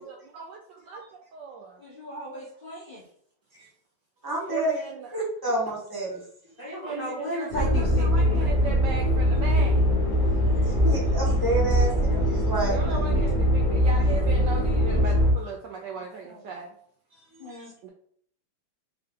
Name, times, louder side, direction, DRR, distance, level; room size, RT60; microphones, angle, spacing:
voice 1, 0.0-1.8 4.5-5.1 5.7-5.8 6.8-9.9 12.7-16.7 17.8-17.9, right 5 dB, 80° right, 1 dB, 1.0 m, -37 dB
voice 2, 1.8-3.0 6.6-8.4 13.1-13.2 16.2-16.4 17.4-17.7, equal, 90° left, -5 dB, 0.4 m, -35 dB
voice 3, 4.2-4.7 5.1-6.2 10.7-12.8 17.5-17.6, right 2 dB, 20° right, -3 dB, 0.7 m, -29 dB
sound 1, 7.5-15.3, equal, 35° left, 0.7 m, -22 dB
3.8 x 3.4 x 3.7 m, 0.62 s
omnidirectional pair, 2.4 m